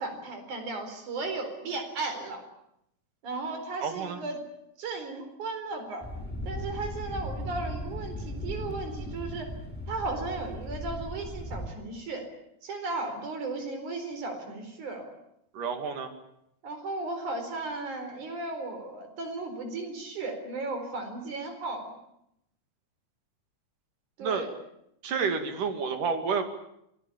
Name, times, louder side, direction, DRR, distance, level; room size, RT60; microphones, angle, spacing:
voice 1, 0.0-2.4 3.2-4.4 4.8-6.1 6.5-9.5 9.9-12.3 12.6-15.1 16.6-21.9 24.2-24.5, right 3 dB, 70° right, 6 dB, 5.8 m, -35 dB
voice 2, 3.8-4.2 15.5-16.1 24.2-24.5 25.0-26.5, right 5 dB, 90° right, 7 dB, 4.0 m, -29 dB
Thunder, 6.0-11.7, equal, 5° left, 4.7 m, -37 dB
27.0 x 20.5 x 8.6 m, 0.77 s
omnidirectional pair, 3.6 m